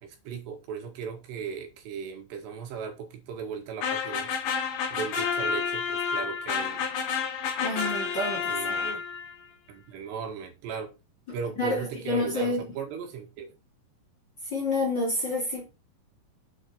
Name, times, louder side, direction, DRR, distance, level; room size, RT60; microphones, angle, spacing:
voice 1, 0.0-4.3 4.9-6.8 8.5-9.0 9.7-10.9 11.3-13.5, right 6 dB, 70° right, 3.9 m, -37 dB
sound 1, 3.8-9.3, left 6 dB, 60° left, 3.4 m, -30 dB
voice 2, 7.6-9.0 11.3-12.7 14.4-15.7, left 2 dB, 30° left, 2.6 m, -29 dB
8.2 x 6.4 x 5.7 m
omnidirectional pair, 5.3 m